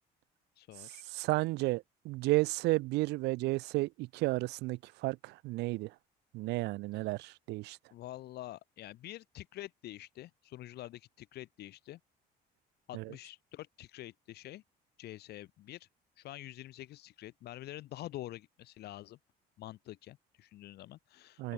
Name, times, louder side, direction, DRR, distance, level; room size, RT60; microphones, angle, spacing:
voice 1, 0.6-1.0 6.9-7.1 7.9-12.0 12.9-14.6 15.0-15.9 16.2-19.2 19.6-21.5, left 15 dB, 75° left, 2.8 m, -47 dB
voice 2, 1.1-5.9 6.3-7.8 12.9-13.0 21.4-21.5, right 21 dB, 90° right, 0.9 m, -32 dB
cardioid pair, 110°, 17 cm